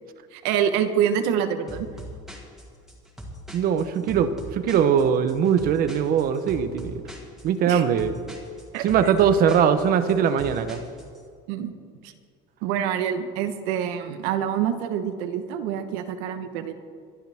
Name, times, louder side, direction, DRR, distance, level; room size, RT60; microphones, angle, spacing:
voice 1, 0.3-1.9 7.7-7.8 8.7-9.2 11.5-11.7 12.0-12.1 12.6-16.7, right 9 dB, 85° right, 9 dB, 1.2 m, -26 dB
sound 1, 1.7-11.2, equal, ahead, 2.1 m, -41 dB
voice 2, 3.5-7.0 7.4-8.1 8.8-10.8, right 7 dB, 45° right, 11 dB, 0.9 m, -21 dB
23.0 x 11.0 x 3.5 m, 2.1 s
cardioid pair, 155°, 21 cm